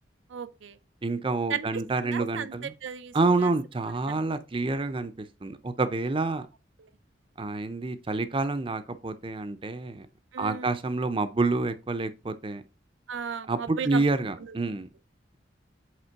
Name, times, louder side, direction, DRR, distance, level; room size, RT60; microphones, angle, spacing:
voice 1, 0.3-0.8 1.5-2.5 2.8-3.5 4.1-4.2 6.8-6.9 10.3-10.8 13.1-14.0 14.4-14.6, right 6 dB, 80° right, 0.5 m, -36 dB
voice 2, 1.0-2.7 3.1-6.5 7.4-10.1 10.4-12.6 13.5-14.9, right 3 dB, 30° right, 0.5 m, -28 dB
8.1 x 3.3 x 4.5 m
head